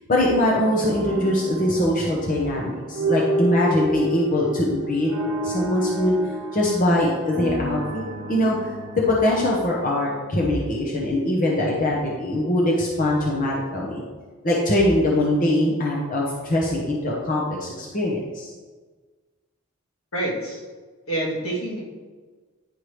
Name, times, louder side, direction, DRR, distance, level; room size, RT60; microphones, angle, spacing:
voice 1, 0.1-6.1 6.5-8.0 8.3-8.6 9.0-14.0 14.4-18.5, left 1 dB, 40° left, -3 dB, 0.9 m, -22 dB
sound 1, 0.7-10.8, right 1 dB, 65° right, 0.8 m, -30 dB
voice 2, 20.1-20.7 21.1-21.8, right 1 dB, 80° left, -4 dB, 1.9 m, -27 dB
9.7 x 4.6 x 3.3 m, 1.4 s
head